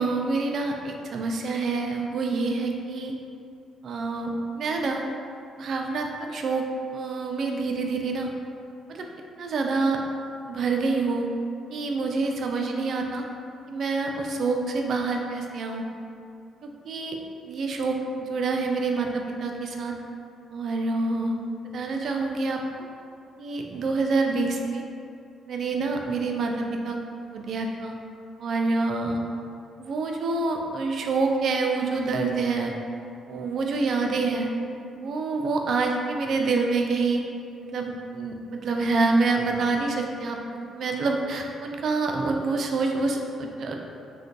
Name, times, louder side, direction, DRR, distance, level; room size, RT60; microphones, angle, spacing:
voice 1, 0.0-3.1 3.8-5.0 5.6-8.3 8.9-9.1 9.4-10.0 10.4-11.3 11.7-13.2 13.7-15.8 16.6-17.2 17.5-18.0 18.3-19.9 20.5-21.3 21.7-22.9 23.4-24.8 25.5-27.0 27.3-27.9 28.4-29.2 29.8-32.7 33.3-34.5 35.0-37.2 37.6-40.4 40.7-43.7, right 3 dB, 60° right, 2 dB, 0.3 m, -27 dB
2.4 x 2.2 x 3.8 m, 2.4 s
cardioid pair, 90°, 0 cm